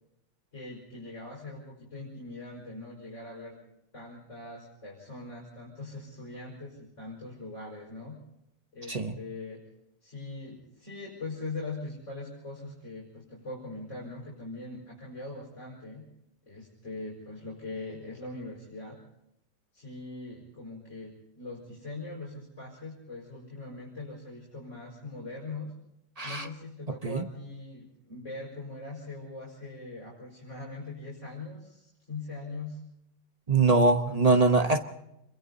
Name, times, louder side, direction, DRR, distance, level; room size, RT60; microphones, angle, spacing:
voice 1, 0.5-3.5 3.9-8.2 8.7-9.6 10.0-16.0 16.5-19.0 19.7-25.7 26.2-32.8, left 2 dB, 30° left, -3 dB, 6.0 m, -41 dB
voice 2, 26.2-26.5 27.0-27.2 33.5-34.8, right 3 dB, 90° right, 6 dB, 0.3 m, -23 dB
27.5 x 22.5 x 4.2 m, 0.85 s
omnidirectional pair, 2.4 m